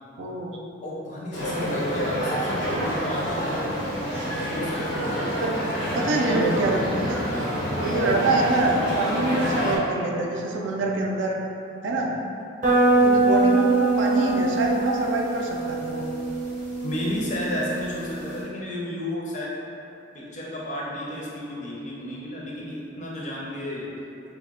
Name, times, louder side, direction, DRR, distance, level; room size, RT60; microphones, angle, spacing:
voice 1, 0.2-0.6 5.4-5.5 5.9-7.2 7.8-11.4 11.8-12.1 13.0-16.1, right 2 dB, 80° right, -1 dB, 0.4 m, -25 dB
voice 2, 0.8-3.7 4.4-4.8 6.0-7.0 7.4-7.7 12.9-13.2 16.8-19.5 20.1-23.9, left 1 dB, 40° left, -5 dB, 0.5 m, -32 dB
sound 1, 1.3-9.8, equal, 85° left, 0.7 m, -27 dB
sound 2, 12.6-18.4, right 2 dB, 40° right, 0.6 m, -23 dB
2.8 x 2.1 x 3.6 m, 2.8 s
head